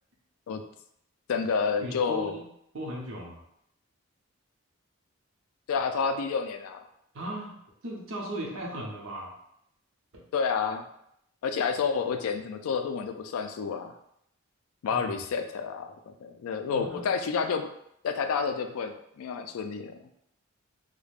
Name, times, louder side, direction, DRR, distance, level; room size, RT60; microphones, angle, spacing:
voice 1, 1.3-2.3 5.7-6.8 10.3-10.9 11.4-14.0 14.8-17.7 18.0-20.0, left 5 dB, 80° left, 7 dB, 0.3 m, -29 dB
voice 2, 1.8-2.5 2.7-3.4 7.1-7.6 7.8-9.3 10.1-10.2 14.9-15.2 16.7-17.1, right 1 dB, 70° right, -2 dB, 0.7 m, -37 dB
2.4 x 2.1 x 3.3 m, 0.75 s
head